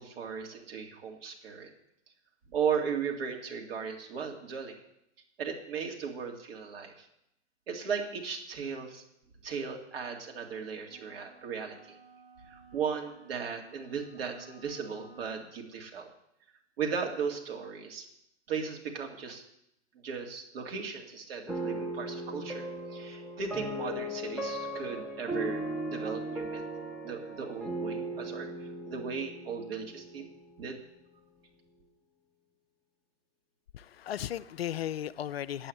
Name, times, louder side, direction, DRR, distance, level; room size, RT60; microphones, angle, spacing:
voice 1, 0.0-1.7 2.5-4.8 5.4-7.1 7.7-9.0 9.4-12.0 12.5-16.1 16.8-18.1 18.5-19.4 19.9-26.6 27.0-30.2 30.6-30.8, right 6 dB, 55° right, 2.3 m, -36 dB
sound 1, 10.9-15.5, right 3 dB, 35° right, 1.8 m, -56 dB
sound 2, 21.5-30.6, right 1 dB, ahead, 0.6 m, -37 dB
voice 2, 33.7-35.7, left 11 dB, 60° left, 0.5 m, -35 dB
8.6 x 7.8 x 8.8 m
figure-of-eight pair, 115°, 35 cm